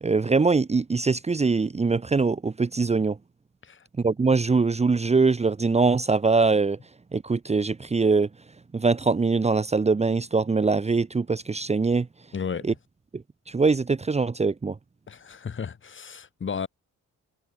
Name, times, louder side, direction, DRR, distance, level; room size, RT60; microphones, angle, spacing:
voice 1, 0.0-3.2 4.0-6.8 7.1-8.3 8.7-12.1 12.6-12.7 13.5-14.8, right 4 dB, 20° right, 1.1 m, -22 dB
voice 2, 12.3-12.7 15.1-16.7, left 6 dB, 40° left, 3.4 m, -33 dB
cardioid pair, 90°, 30 cm